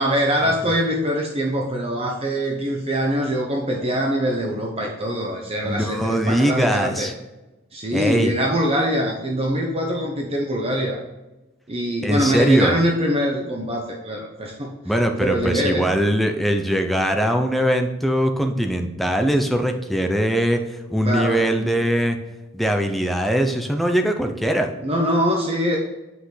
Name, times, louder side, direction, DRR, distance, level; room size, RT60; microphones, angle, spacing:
voice 1, 0.0-7.1 7.7-11.0 11.7-14.8 15.2-15.9 21.0-21.4 24.8-25.8, equal, 30° right, 0 dB, 0.9 m, -23 dB
voice 2, 5.6-7.1 7.9-8.3 12.0-12.7 14.8-22.2 22.5-24.7, equal, ahead, 4 dB, 0.7 m, -21 dB
8.0 x 5.7 x 3.3 m, 1.1 s
head